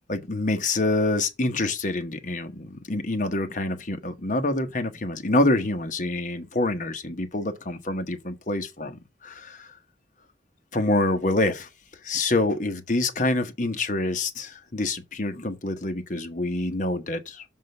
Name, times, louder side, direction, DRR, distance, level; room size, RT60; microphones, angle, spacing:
voice 1, 0.1-9.7 10.7-11.7 12.0-17.4, left 2 dB, 45° left, 1.1 m, -26 dB
6.8 x 3.8 x 6.4 m
head